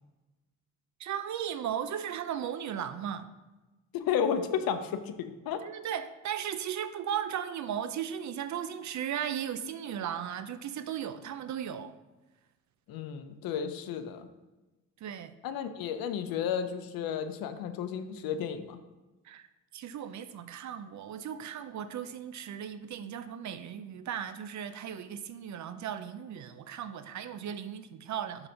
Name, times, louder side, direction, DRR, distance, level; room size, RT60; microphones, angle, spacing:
voice 1, 1.0-3.3 5.6-11.9 15.0-15.3 19.2-19.5 19.7-28.5, right 9 dB, 55° right, 0.5 m, -36 dB
voice 2, 3.9-5.6 12.9-14.3 15.4-18.8, left 8 dB, 90° left, 0.6 m, -32 dB
5.9 x 3.9 x 5.1 m
cardioid pair, 100°, 34 cm